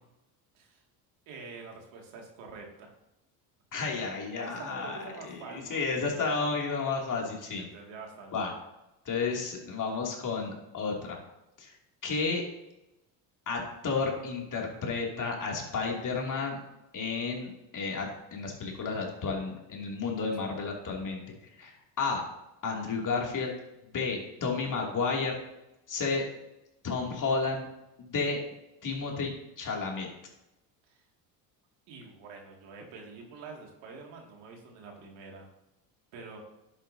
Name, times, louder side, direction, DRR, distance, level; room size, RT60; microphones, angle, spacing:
voice 1, 1.3-2.9 4.4-6.2 7.6-8.3 30.9-31.0 31.9-35.5 36.1-36.4, right 4 dB, 75° right, 0 dB, 2.4 m, -46 dB
voice 2, 3.7-7.7 8.3-8.5 9.0-11.2 11.6-11.7 12.0-12.4 13.5-16.6 16.9-21.2 21.6-21.7 22.0-22.2 22.6-23.5 23.9-25.3 25.9-26.2 26.8-27.7 28.0-28.4 28.8-29.3 29.6-30.1, left 4 dB, 40° left, 0 dB, 2.7 m, -32 dB
10.5 x 8.2 x 2.8 m, 0.93 s
supercardioid pair, 80°, 46 cm